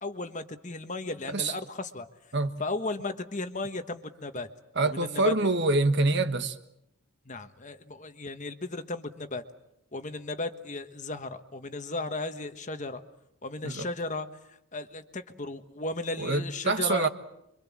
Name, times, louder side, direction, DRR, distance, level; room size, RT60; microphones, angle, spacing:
voice 1, 0.0-2.1 2.6-4.5 4.9-5.3 7.2-9.4 9.9-13.0 13.4-17.1, left 2 dB, 35° left, 1.3 m, -35 dB
voice 2, 4.7-6.6 13.6-13.9 16.2-17.1, right 2 dB, 50° right, 1.4 m, -26 dB
26.5 x 24.5 x 7.4 m
head